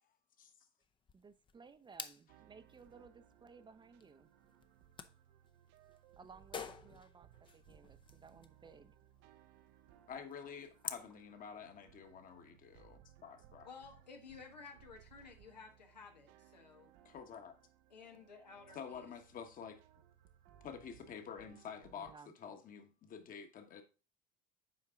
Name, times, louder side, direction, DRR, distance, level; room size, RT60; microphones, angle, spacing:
sound 1, 0.8-11.1, left 6 dB, 25° left, 0.6 m, -51 dB
voice 1, 1.1-4.3 6.2-8.9 22.0-22.6, right 5 dB, 20° right, 0.6 m, -59 dB
sound 2, 2.3-22.1, right 11 dB, 60° right, 0.7 m, -64 dB
voice 2, 10.1-13.7 17.0-17.5 18.7-19.8 20.6-22.1 22.4-23.8, left 7 dB, 40° left, 1.3 m, -49 dB
voice 3, 13.6-16.9 17.9-19.1, left 5 dB, 90° left, 1.2 m, -54 dB
7.6 x 4.7 x 3.7 m
hypercardioid pair, 75°, 21 cm